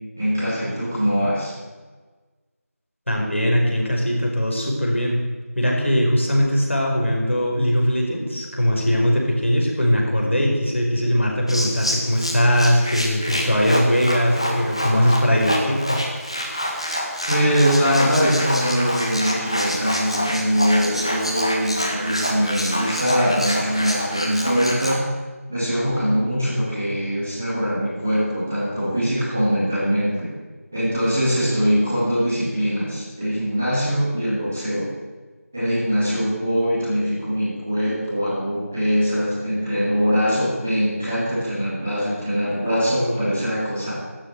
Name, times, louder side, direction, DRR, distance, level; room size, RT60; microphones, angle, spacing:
voice 1, 0.2-1.5 17.3-25.0 25.5-30.3 30.7-34.9 35.5-43.9, equal, 10° right, -13 dB, 2.2 m, -22 dB
voice 2, 3.1-5.2 5.5-16.0, equal, 50° left, 0 dB, 4.9 m, -20 dB
sound 1, 11.5-25.0, equal, 20° left, 1.4 m, -27 dB
13.0 x 11.5 x 9.4 m, 1.3 s
figure-of-eight pair, 180°, 8 cm